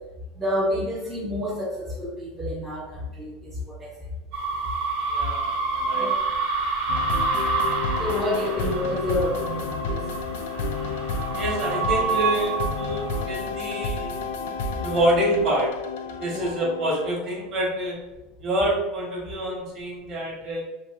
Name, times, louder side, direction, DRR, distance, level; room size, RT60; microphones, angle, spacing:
voice 1, 0.4-4.0 5.9-6.1 8.0-10.1 16.3-16.5, left 1 dB, 10° right, -5 dB, 0.4 m, -29 dB
sound 1, 4.3-13.2, right 4 dB, 60° right, 0.8 m, -28 dB
voice 2, 5.1-6.1 11.3-14.2 14.8-15.7 16.2-18.0 18.4-20.6, right 1 dB, 35° right, -4 dB, 0.9 m, -26 dB
sound 2, 6.9-17.3, left 4 dB, 80° left, 0.3 m, -31 dB
2.9 x 2.5 x 2.4 m, 1.0 s
supercardioid pair, 170°, 0 cm